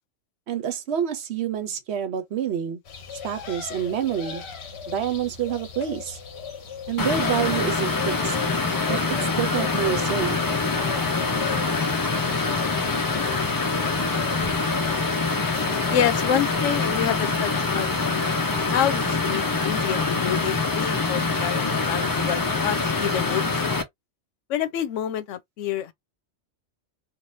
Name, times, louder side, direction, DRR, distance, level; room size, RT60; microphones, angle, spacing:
voice 1, 0.5-2.8 3.2-4.4 4.9-6.2 6.9-8.4 8.9-9.0 9.4-10.4, right 9 dB, 65° right, 1.0 m, -27 dB
sound 1, 2.8-16.3, left 7 dB, 60° left, 1.0 m, -38 dB
sound 2, 7.0-23.8, left 3 dB, 35° left, 0.3 m, -25 dB
voice 2, 15.9-18.3 18.7-23.7 24.5-25.9, left 10 dB, 85° left, 0.9 m, -28 dB
3.2 x 2.4 x 2.7 m
omnidirectional pair, 1.2 m